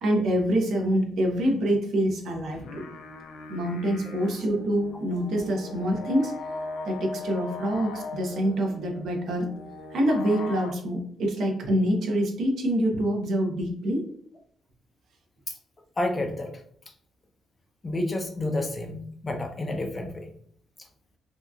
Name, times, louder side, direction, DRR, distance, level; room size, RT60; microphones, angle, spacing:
voice 1, 0.0-2.8 3.5-6.3 6.8-9.5 9.9-14.0, equal, 65° right, 1 dB, 0.7 m, -26 dB
sound 1, 2.5-10.7, left 3 dB, 85° left, 0.4 m, -39 dB
voice 2, 16.0-16.5 17.8-20.3, left 1 dB, 25° left, 4 dB, 0.4 m, -30 dB
2.7 x 2.3 x 2.3 m, 0.62 s
cardioid pair, 145°, 0 cm